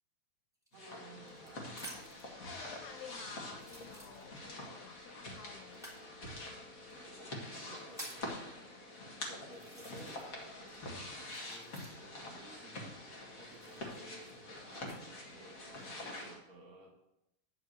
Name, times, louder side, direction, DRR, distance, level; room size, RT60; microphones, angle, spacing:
sound 1, 0.6-2.3 3.0-3.1 3.5-4.6 5.7-6.0 6.9-7.0 7.5-8.3 9.0-9.1 9.5-10.4 10.7-12.2 13.4-15.0 15.6-16.1, right 1 dB, ahead, 2.5 m, -51 dB
sound 2, 0.7-16.4, left 1 dB, 40° left, 1.2 m, -46 dB
voice 1, 0.7-2.0 4.2-4.4 6.9-8.7 9.3-16.9, right 2 dB, 55° right, -1 dB, 3.0 m, -57 dB
voice 2, 2.4-5.9, left 6 dB, 85° left, 6 dB, 1.6 m, -52 dB
9.9 x 4.8 x 7.9 m, 0.87 s
omnidirectional pair, 4.0 m